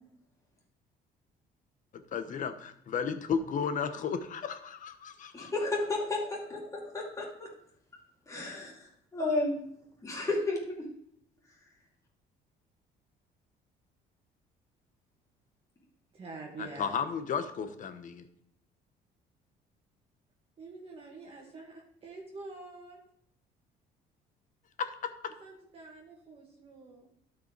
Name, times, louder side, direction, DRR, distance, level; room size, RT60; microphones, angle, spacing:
voice 1, 1.9-5.5 16.6-18.3 24.8-25.1, left 6 dB, 50° left, 9 dB, 1.0 m, -34 dB
voice 2, 5.3-7.5 8.3-9.6 10.0-10.9 11.5-11.6, left 2 dB, 20° left, -3 dB, 2.6 m, -33 dB
voice 3, 16.1-17.0 20.6-23.0 25.4-27.1, right 3 dB, 35° right, -2 dB, 1.8 m, -46 dB
12.0 x 5.3 x 4.6 m, 0.70 s
cardioid pair, 110°, 17 cm